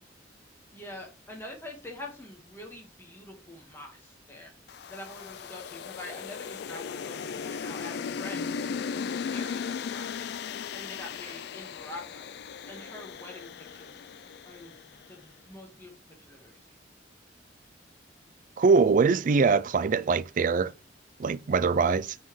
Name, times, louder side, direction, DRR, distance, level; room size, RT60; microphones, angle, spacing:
voice 1, 0.7-4.5 4.9-8.5 8.9-10.3 10.7-12.3 12.7-14.0 14.4-16.6, left 1 dB, 15° left, 1.5 m, -45 dB
sound 1, 4.7-15.0, left 6 dB, 60° left, 0.3 m, -37 dB
voice 2, 18.6-20.7 21.2-22.2, right 4 dB, 45° right, 0.3 m, -23 dB
9.3 x 4.1 x 3.2 m
head